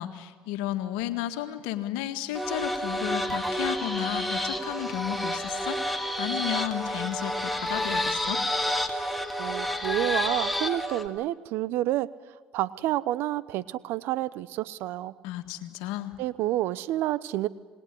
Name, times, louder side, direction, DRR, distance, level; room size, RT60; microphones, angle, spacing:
voice 1, 0.0-8.4 15.2-16.1, left 13 dB, 80° left, 8 dB, 1.8 m, -33 dB
sound 1, 2.3-11.1, left 1 dB, ahead, 2.8 m, -29 dB
voice 2, 9.4-12.1 12.5-15.1 16.2-17.5, right 14 dB, 70° right, 18 dB, 0.9 m, -29 dB
27.5 x 20.0 x 10.0 m, 1.5 s
hypercardioid pair, 65°, 4 cm